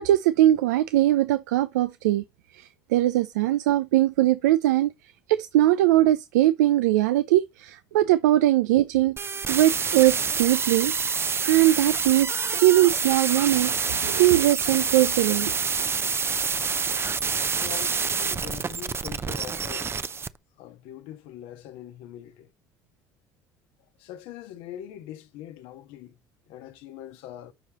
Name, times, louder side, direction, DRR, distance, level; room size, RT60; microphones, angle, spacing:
voice 1, 0.0-2.2 2.5-4.9 5.3-9.2 9.5-10.9 11.4-15.5, right 14 dB, 85° right, 0.5 m, -21 dB
sound 1, 9.2-20.3, right 5 dB, 25° right, 0.6 m, -27 dB
voice 2, 17.6-20.1 20.6-22.5 24.0-26.2 26.5-27.5, left 11 dB, 70° left, 1.4 m, -42 dB
12.0 x 4.9 x 3.0 m
hypercardioid pair, 75°, 9 cm